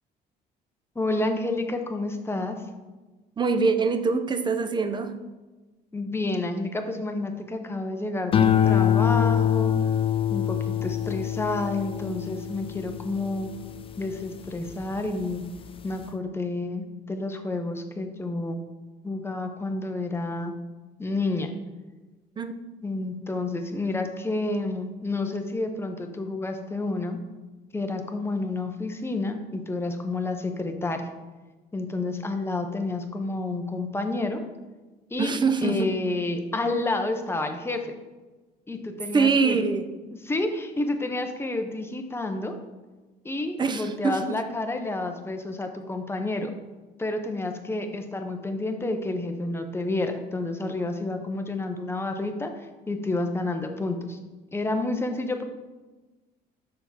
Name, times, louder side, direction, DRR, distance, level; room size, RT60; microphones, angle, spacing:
voice 1, 1.0-2.6 5.9-9.7 10.3-13.5 14.0-15.4 15.8-18.6 19.0-20.5 21.0-21.5 22.8-27.2 27.7-31.0 31.7-34.4 35.1-35.3 35.6-37.9 38.7-39.6 40.2-42.5 43.2-46.5 47.0-52.5 52.9-54.2 54.5-55.4, left 2 dB, 15° left, 5 dB, 0.8 m, -29 dB
voice 2, 3.4-5.1 22.4-22.5 35.2-35.9 39.1-39.9 43.6-44.4, right 4 dB, 25° right, 8 dB, 0.6 m, -24 dB
sound 1, 8.3-14.8 15.3-15.8, left 9 dB, 35° left, 0.4 m, -25 dB
6.7 x 3.7 x 5.7 m, 1.2 s
cardioid pair, 110°, 17 cm